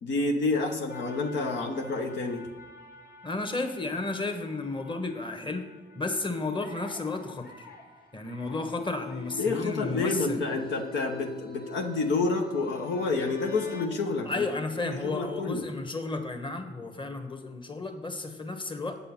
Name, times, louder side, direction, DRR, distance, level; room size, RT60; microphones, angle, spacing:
voice 1, 0.0-2.4 9.3-14.5 14.8-15.7, left 3 dB, 90° left, 2 dB, 0.9 m, -29 dB
sound 1, 0.9-13.9, left 4 dB, 60° left, 1.4 m, -47 dB
voice 2, 3.2-5.6 5.9-7.7 8.1-10.4 14.2-19.0, left 3 dB, 25° left, 6 dB, 1.2 m, -33 dB
7.9 x 5.5 x 5.7 m, 1.4 s
supercardioid pair, 55°, 18 cm